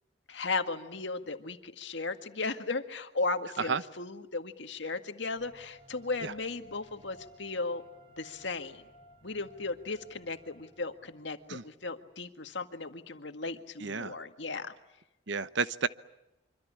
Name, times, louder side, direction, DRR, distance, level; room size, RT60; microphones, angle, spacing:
voice 1, 0.3-7.8 8.2-8.8 9.2-14.7, left 3 dB, 70° left, 8 dB, 1.9 m, -36 dB
sound 1, 5.3-11.8, equal, 25° right, 6.7 m, -57 dB
voice 2, 13.8-14.2 15.3-15.9, right 5 dB, 70° right, 14 dB, 1.0 m, -31 dB
25.5 x 25.5 x 8.6 m, 0.94 s
head